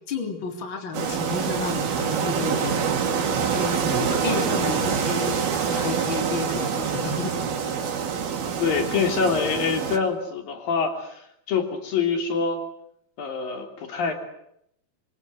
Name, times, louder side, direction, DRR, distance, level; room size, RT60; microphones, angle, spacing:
voice 1, 0.1-5.4 5.7-7.3, left 3 dB, 30° left, 5 dB, 4.1 m, -31 dB
sound 1, 0.9-10.0, right 6 dB, 90° right, 4.5 m, -26 dB
voice 2, 8.6-12.6 13.2-14.1, left 5 dB, 70° left, 6 dB, 4.9 m, -25 dB
26.0 x 26.0 x 7.9 m, 0.74 s
omnidirectional pair, 4.2 m